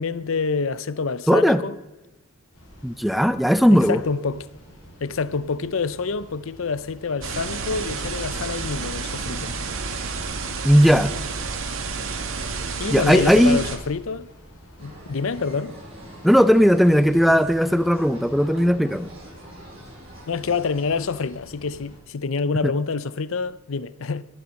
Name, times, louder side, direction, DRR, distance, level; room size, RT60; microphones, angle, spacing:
voice 1, 0.0-1.8 3.7-4.5 5.0-9.5 12.8-14.3 14.8-15.7 20.3-24.2, left 4 dB, 65° left, 0.6 m, -27 dB
voice 2, 1.3-1.6 2.8-4.0 10.6-11.1 12.9-13.6 16.2-19.1 22.6-22.7, equal, ahead, 0.5 m, -17 dB
sound 1, 2.5-22.0, equal, 85° left, 6.9 m, -48 dB
sound 2, 7.2-13.8, right 4 dB, 70° right, 2.1 m, -30 dB
sound 3, 14.8-21.3, right 1 dB, 25° right, 6.8 m, -44 dB
23.0 x 10.0 x 6.4 m
head